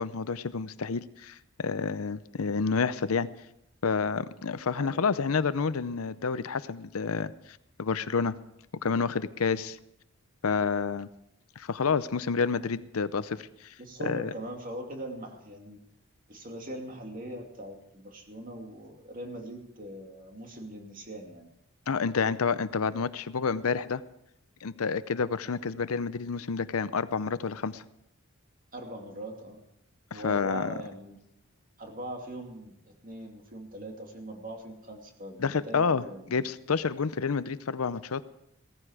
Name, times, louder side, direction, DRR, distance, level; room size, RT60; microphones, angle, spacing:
voice 1, 0.0-3.3 3.8-7.3 7.8-8.3 8.8-9.8 10.4-11.1 11.6-13.7 14.0-14.3 21.9-24.0 24.6-27.8 30.1-30.7 35.4-36.0 36.3-38.2, left 5 dB, 85° left, 15 dB, 0.6 m, -29 dB
voice 2, 4.7-5.1 13.8-15.8 16.3-21.5 28.7-29.6 30.1-31.2 31.8-36.5, right 1 dB, 40° right, 2 dB, 2.4 m, -41 dB
16.5 x 14.5 x 4.9 m, 0.80 s
head